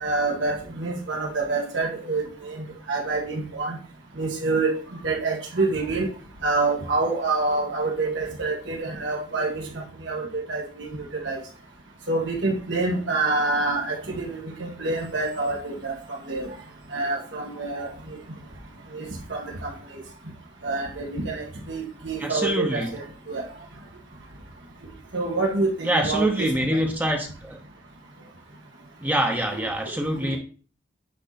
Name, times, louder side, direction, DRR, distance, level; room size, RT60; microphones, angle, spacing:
voice 1, 0.0-3.8 4.2-4.7 5.0-6.1 6.4-9.6 10.1-10.2 10.5-10.9 11.2-11.4 12.1-16.5 16.9-17.9 18.9-19.0 19.3-19.7 20.6-23.4 25.1-27.1 29.5-29.6, right 3 dB, 75° right, -2 dB, 1.9 m, -27 dB
voice 2, 22.2-22.9 25.8-27.6 29.0-30.4, equal, 10° right, 2 dB, 0.9 m, -25 dB
9.4 x 4.4 x 4.2 m, 0.39 s
head